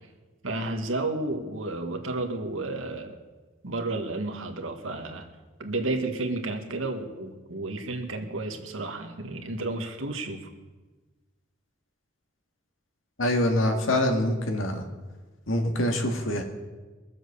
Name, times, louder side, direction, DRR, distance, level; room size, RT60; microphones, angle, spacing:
voice 1, 0.4-3.2 3.6-5.3 5.6-10.5, right 2 dB, 85° right, 5 dB, 1.7 m, -32 dB
voice 2, 13.2-14.8 15.5-16.4, left 1 dB, 85° left, 4 dB, 1.9 m, -25 dB
22.0 x 7.7 x 6.9 m, 1.3 s
head